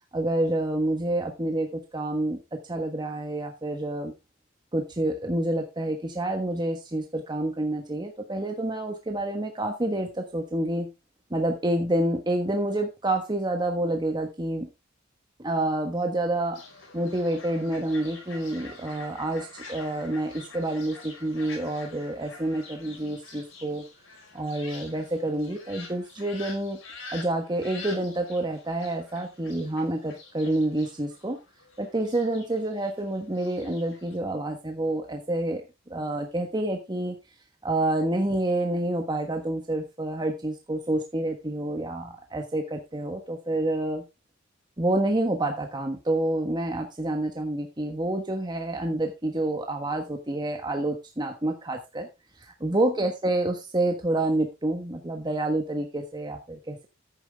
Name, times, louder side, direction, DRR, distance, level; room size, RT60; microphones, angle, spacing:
voice 1, 0.1-4.1 4.7-10.9 11.3-14.7 15.4-16.6 16.9-23.8 24.3-26.8 27.1-31.4 31.8-37.2 37.6-44.0 44.8-52.1 52.4-56.9, right 1 dB, 20° right, 4 dB, 1.3 m, -28 dB
Fowl, 16.5-34.2, left 4 dB, 65° left, 5.2 m, -46 dB
10.5 x 9.0 x 3.5 m, 0.25 s
head